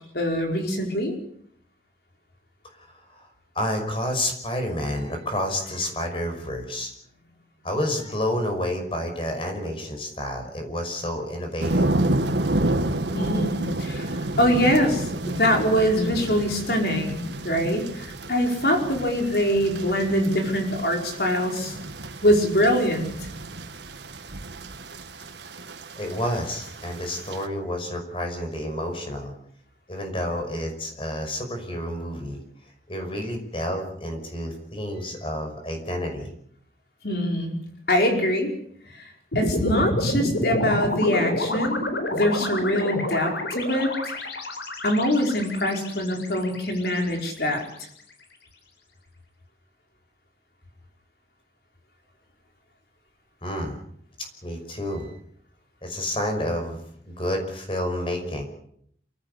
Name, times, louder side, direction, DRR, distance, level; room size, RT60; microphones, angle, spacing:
voice 1, 0.1-1.1 13.1-14.1 14.4-21.8 22.2-23.3 37.0-37.6 37.9-38.5 38.9-39.1 39.3-41.8 42.1-44.1 44.8-47.6, equal, 60° left, 2 dB, 5.0 m, -23 dB
voice 2, 2.8-3.3 3.5-6.9 7.6-11.8 25.2-25.3 26.0-29.3 29.9-32.4 32.9-36.3 53.4-53.8 54.2-55.2 55.8-58.4, left 1 dB, 30° left, 5 dB, 5.7 m, -29 dB
sound 1, 11.6-27.5, right 1 dB, 80° right, 1.7 m, -30 dB
sound 2, 39.3-47.6, left 1 dB, 85° left, 4.3 m, -29 dB
28.0 x 15.0 x 8.3 m, 0.67 s
head